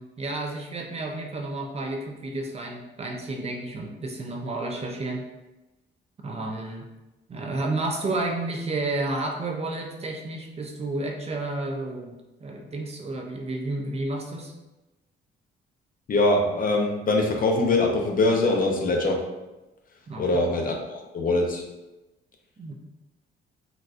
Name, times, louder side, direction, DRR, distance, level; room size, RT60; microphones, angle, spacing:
voice 1, 0.0-5.2 6.2-6.9 7.3-14.5 20.1-20.2 22.6-22.7, right 2 dB, 30° right, 1 dB, 0.5 m, -31 dB
voice 2, 16.1-19.2 20.2-21.6, left 2 dB, 45° left, 1 dB, 0.6 m, -23 dB
4.0 x 2.2 x 2.5 m, 1.0 s
cardioid pair, 90°, 20 cm